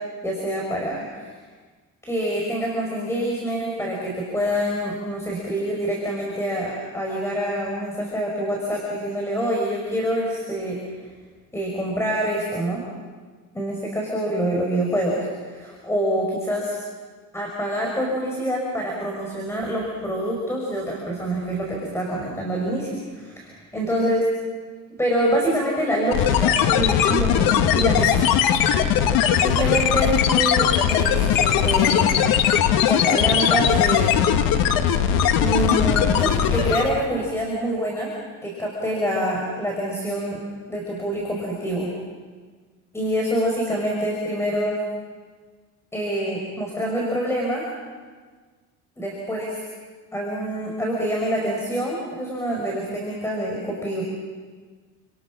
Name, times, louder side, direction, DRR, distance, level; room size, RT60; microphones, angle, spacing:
voice 1, 0.2-1.3 2.0-10.8 11.5-12.8 13.5-16.8 17.3-24.2 25.0-28.8 29.3-30.1 30.3-32.2 32.9-34.3 35.4-38.1 38.4-40.4 40.7-41.9 42.9-44.8 45.9-47.6 49.0-49.6 50.1-54.0, equal, 10° left, -2 dB, 5.5 m, -26 dB
sound 1, 26.1-37.0, left 9 dB, 85° left, 2.0 m, -19 dB
29.5 x 27.5 x 6.3 m, 1.5 s
cardioid pair, 140°, 33 cm